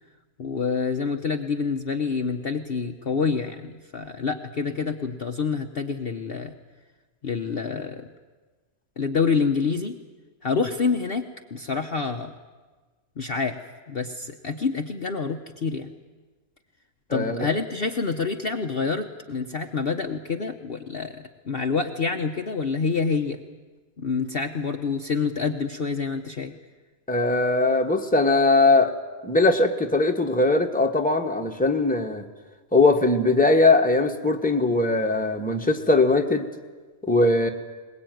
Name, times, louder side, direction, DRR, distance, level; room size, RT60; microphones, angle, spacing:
voice 1, 0.4-6.5 7.2-8.1 9.0-10.0 10.4-12.3 13.2-13.6 13.9-15.9 17.1-23.4 24.0-26.5, left 5 dB, 45° left, 4 dB, 1.1 m, -27 dB
voice 2, 17.1-17.5 27.1-28.9 29.2-32.2 32.7-36.5 37.0-37.5, left 2 dB, 5° left, 3 dB, 1.4 m, -20 dB
21.5 x 20.5 x 9.3 m, 1.4 s
omnidirectional pair, 1.5 m